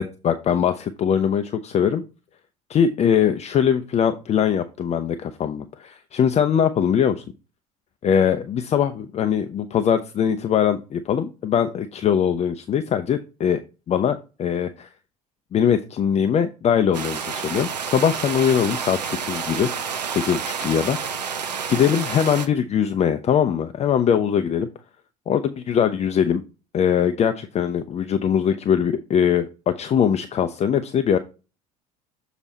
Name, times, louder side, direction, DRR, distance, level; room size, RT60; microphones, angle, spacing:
voice 1, 0.0-2.0 2.7-7.2 8.0-13.6 13.9-14.9 15.5-21.3 21.7-24.7 25.3-26.4 26.7-31.2, left 8 dB, 30° left, 9 dB, 0.6 m, -21 dB
sound 1, 16.9-22.5, right 6 dB, 85° right, 0.7 m, -29 dB
7.1 x 4.0 x 4.2 m, 0.31 s
figure-of-eight pair, 60°, 21 cm